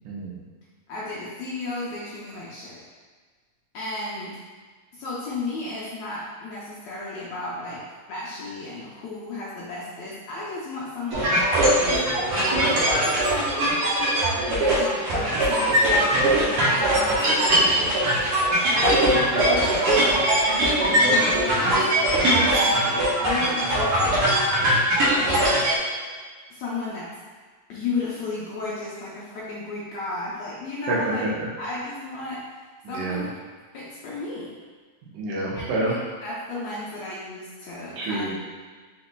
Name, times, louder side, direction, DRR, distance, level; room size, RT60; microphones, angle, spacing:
voice 1, 0.1-0.4 21.7-21.9 30.9-31.5 32.8-33.2 35.1-35.9 38.0-38.4, right 2 dB, 80° right, -4 dB, 2.4 m, -28 dB
voice 2, 0.9-2.8 3.7-4.4 4.9-7.8 8.1-12.0 12.5-13.8 14.5-18.1 18.7-20.2 20.5-24.4 25.2-25.6 26.5-27.1 27.7-31.2 31.6-32.4 32.9-33.3 33.7-34.5 35.5-38.3, left 2 dB, 75° left, -7 dB, 1.7 m, -34 dB
sound 1, 11.1-25.8, right 1 dB, 60° right, 1.5 m, -21 dB
5.3 x 4.0 x 2.2 m, 1.5 s
omnidirectional pair, 3.7 m